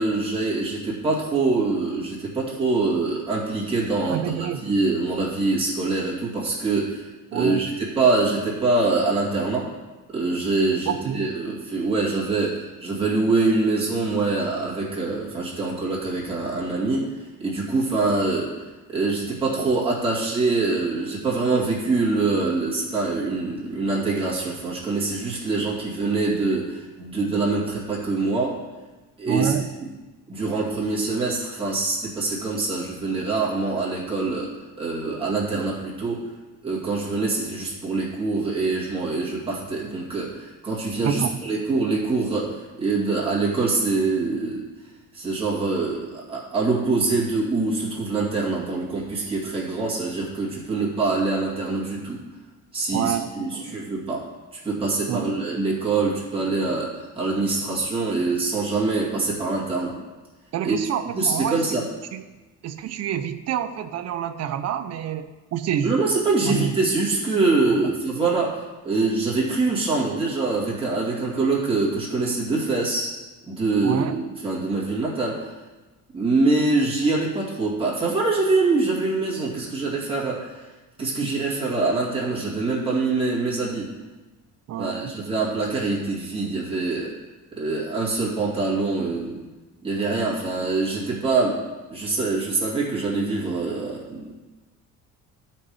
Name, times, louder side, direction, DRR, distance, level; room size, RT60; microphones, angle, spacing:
voice 1, 0.0-7.1 7.3-9.7 10.1-17.1 17.4-18.5 18.9-28.6 29.2-29.5 29.8-29.9 30.3-36.3 36.6-44.6 45.1-52.2 52.7-54.3 54.6-60.0 60.6-60.8 61.1-61.9 65.8-73.1 73.5-75.5 76.1-80.6 81.0-83.9 84.8-87.1 87.5-89.4 89.8-91.6 91.9-94.3, right 3 dB, 15° right, -6 dB, 2.2 m, -24 dB
voice 2, 4.1-4.7 7.3-7.6 10.9-11.2 29.3-29.7 41.0-41.4 52.9-53.7 55.1-55.3 60.5-61.6 62.1-62.2 62.6-65.9 66.4-66.8 67.7-67.8 73.8-74.2 81.2-81.3 84.7-85.1, right 9 dB, 50° right, 11 dB, 0.6 m, -27 dB
13.0 x 4.5 x 4.8 m, 1.2 s
cardioid pair, 150°, 33 cm